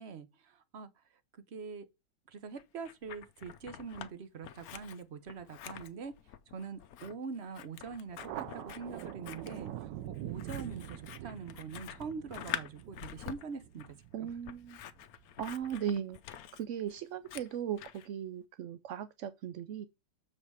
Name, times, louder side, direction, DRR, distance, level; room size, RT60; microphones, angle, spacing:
voice 1, 0.0-1.9 2.3-14.3, right 5 dB, 45° right, 1.0 m, -44 dB
Scissors, 2.6-4.1 4.4-18.1, left 11 dB, 65° left, 1.0 m, -46 dB
Thunder, 8.2-15.2, right 12 dB, 90° right, 1.3 m, -45 dB
voice 2, 14.1-14.8 15.4-16.2 16.5-19.9, right 9 dB, 70° right, 0.7 m, -37 dB
7.2 x 5.3 x 4.7 m
omnidirectional pair, 1.9 m